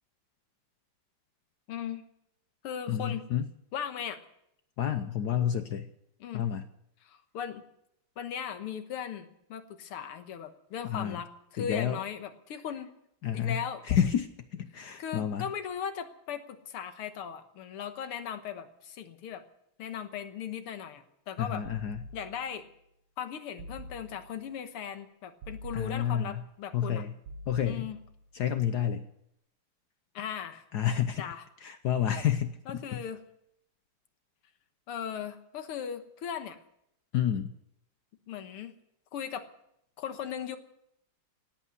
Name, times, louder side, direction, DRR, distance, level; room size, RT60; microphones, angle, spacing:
voice 1, 1.7-2.0 2.6-3.2 3.7-4.2 6.2-6.5 7.0-7.6 8.2-12.9 13.3-13.8 15.0-19.4 19.8-21.6 22.1-22.7 23.2-27.0 27.6-28.0 30.1-30.6 31.2-31.5 32.7-33.2 34.9-36.6 38.3-38.7 39.1-39.5 40.0-40.6, left 8 dB, 85° left, 9 dB, 2.1 m, -38 dB
voice 2, 2.9-3.5 4.8-5.9 6.3-6.6 10.8-11.2 11.6-12.0 13.2-13.6 13.9-15.5 21.4-22.0 25.7-26.4 26.7-27.1 27.5-27.9 28.3-29.1 30.7-31.2 31.6-33.0 37.1-37.5, left 9 dB, 65° left, 10 dB, 1.0 m, -29 dB
sound 1, 21.6-22.7 23.6-24.5 25.4-26.5 27.2-28.3, equal, 85° right, 2.1 m, -45 dB
17.5 x 8.4 x 9.4 m, 0.77 s
omnidirectional pair, 2.4 m